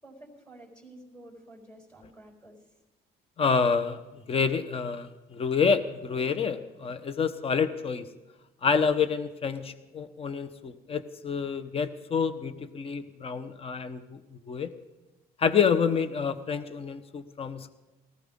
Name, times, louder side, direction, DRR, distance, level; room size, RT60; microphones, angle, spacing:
voice 1, 0.0-2.6, right 1 dB, 10° left, -5 dB, 4.2 m, -50 dB
voice 2, 3.4-4.0 4.3-8.0 8.6-14.2 14.5-14.7 15.4-17.7, left 6 dB, 35° left, 11 dB, 1.0 m, -28 dB
18.0 x 15.0 x 3.7 m, 1.1 s
cardioid pair, 110°, 17 cm